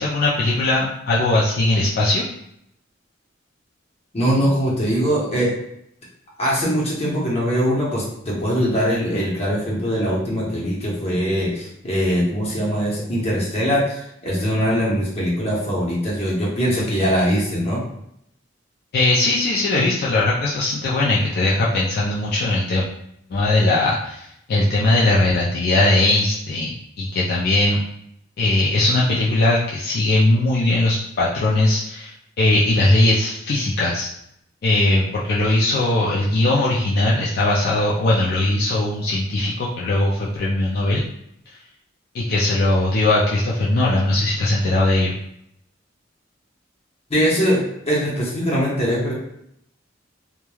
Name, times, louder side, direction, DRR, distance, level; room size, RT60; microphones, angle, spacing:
voice 1, 0.0-2.2 18.9-22.9 23.3-27.8 28.4-32.1 32.4-34.1 34.6-41.0 42.1-45.1, left 2 dB, 55° left, -6 dB, 0.4 m, -19 dB
voice 2, 4.1-5.5 6.4-17.8 47.1-49.1, equal, 35° left, -5 dB, 0.9 m, -21 dB
3.0 x 2.2 x 2.3 m, 0.76 s
head